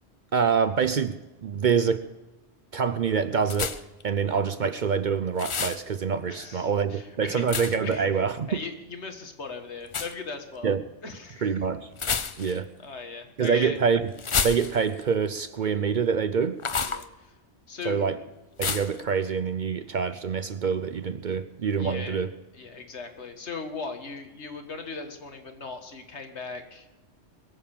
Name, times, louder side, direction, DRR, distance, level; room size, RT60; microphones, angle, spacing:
voice 1, 0.3-2.1 2.7-8.6 10.6-10.8 11.4-11.9 12.4-12.7 13.4-14.1 14.4-16.6 17.8-18.2 18.6-22.3, right 6 dB, 50° right, 12 dB, 0.6 m, -26 dB
sound 1, 3.5-4.0 5.4-5.8 7.5-7.9 9.9-10.1 11.9-12.7 14.2-15.0 16.6-17.1 18.6-19.0, left 5 dB, 35° left, 0.5 m, -29 dB
voice 2, 6.3-8.2 8.5-10.7 11.0-11.7 12.4-13.8 16.8-17.3 17.7-18.0 21.8-22.2 22.5-27.0, left 4 dB, 75° left, 6 dB, 1.9 m, -39 dB
21.5 x 7.5 x 7.2 m, 1.1 s
omnidirectional pair, 1.2 m